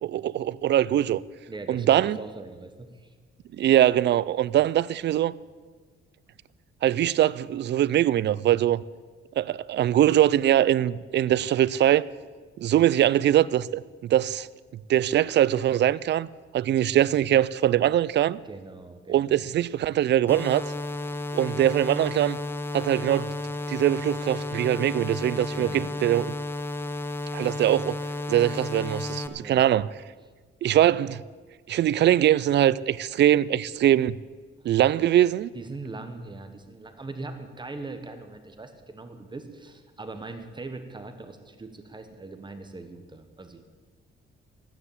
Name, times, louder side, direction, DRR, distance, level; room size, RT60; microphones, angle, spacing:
voice 1, 0.0-1.2 1.7-2.2 3.5-5.3 6.8-8.8 9.4-12.0 12.6-14.5 14.9-16.3 16.5-18.4 19.1-20.6 21.3-22.4 22.7-23.3 23.7-26.3 27.3-28.0 28.3-29.9 30.6-31.2 31.7-34.2 34.6-35.5, right 12 dB, 55° right, 0.4 m, -22 dB
voice 2, 1.5-3.1 18.4-19.5 25.5-25.9 29.4-29.7 35.5-43.6, right 3 dB, 20° right, 1.2 m, -41 dB
sound 1, 20.3-29.3, left 2 dB, 10° left, 0.8 m, -33 dB
13.0 x 9.7 x 7.3 m
cardioid pair, 115°, 21 cm